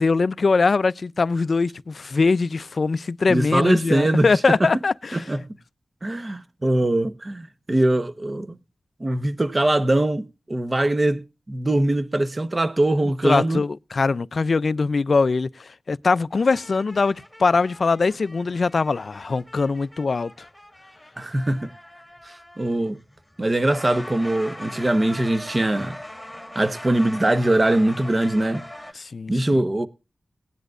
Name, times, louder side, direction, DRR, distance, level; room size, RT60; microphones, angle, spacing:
voice 1, 0.0-5.3 13.2-20.3 29.0-29.6, left 4 dB, 50° left, 0.5 m, -22 dB
voice 2, 3.3-4.7 5.1-5.4 6.0-8.6 9.0-13.6 21.2-21.7 22.2-23.0 23.4-26.0 26.5-28.6 29.3-29.9, right 1 dB, 25° right, 0.9 m, -22 dB
sound 1, 16.3-28.9, left 1 dB, ahead, 1.9 m, -41 dB
19.5 x 10.0 x 2.4 m
wide cardioid pair, 125°, 0 cm